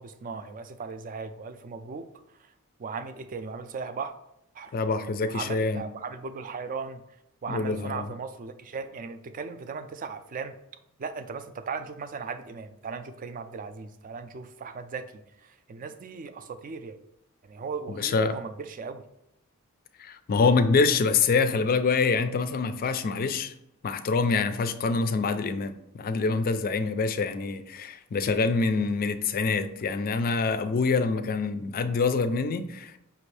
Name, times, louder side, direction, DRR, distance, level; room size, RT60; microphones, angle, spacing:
voice 1, 0.0-2.1 2.8-4.1 4.5-4.7 5.2-7.0 7.4-10.5 11.0-17.0 17.4-19.0, right 5 dB, 40° right, 0.4 m, -37 dB
voice 2, 4.7-5.8 7.5-8.1 17.9-18.4 20.0-23.5 23.8-33.0, left 4 dB, 40° left, 0.4 m, -25 dB
5.8 x 2.6 x 3.2 m
head